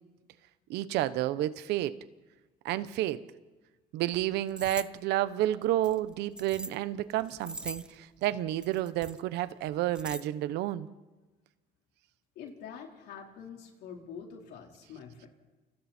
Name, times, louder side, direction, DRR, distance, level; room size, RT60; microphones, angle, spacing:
voice 1, 0.7-2.0 2.6-3.2 3.9-10.9, right 14 dB, 90° right, 14 dB, 1.1 m, -30 dB
sound 1, 4.5-4.9 5.8-6.8 7.2-8.0 8.6-9.2 9.7-10.2, right 1 dB, 5° right, 0.6 m, -41 dB
voice 2, 12.3-15.3, left 7 dB, 80° left, 1 dB, 4.3 m, -45 dB
30.0 x 28.5 x 4.5 m, 1.2 s
cardioid pair, 110°, 17 cm